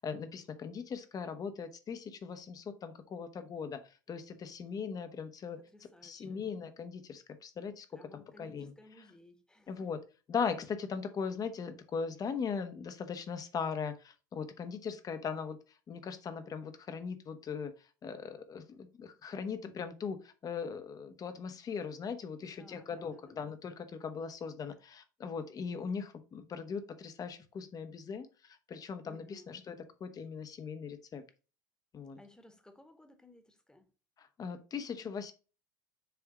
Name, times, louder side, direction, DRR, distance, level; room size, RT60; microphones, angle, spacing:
voice 1, 0.0-5.6 6.0-7.9 8.1-8.7 9.7-10.0 10.3-15.6 15.9-31.2 31.9-32.2 34.2-35.3, left 6 dB, 35° left, 1.2 m, -39 dB
voice 2, 5.6-6.5 7.9-9.9 22.4-23.5 29.0-29.6 32.2-33.9, left 1 dB, 5° left, 1.5 m, -59 dB
6.9 x 3.5 x 5.0 m
hypercardioid pair, 75°, 10 cm